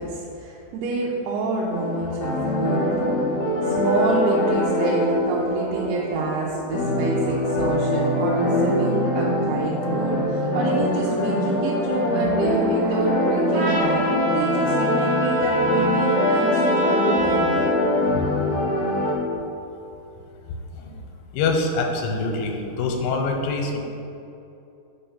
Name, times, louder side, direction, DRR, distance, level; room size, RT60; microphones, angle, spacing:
voice 1, 0.0-2.9 3.6-17.9 18.1-18.2, right 3 dB, 85° right, -4 dB, 2.7 m, -28 dB
sound 1, 1.7-19.2, left 1 dB, 65° left, 2.5 m, -23 dB
Trumpet, 13.5-17.7, left 2 dB, 60° right, 2.3 m, -26 dB
voice 2, 21.3-23.8, left 3 dB, 90° left, 2 dB, 2.8 m, -24 dB
5.5 x 4.4 x 5.4 m, 2.8 s
omnidirectional pair, 4.6 m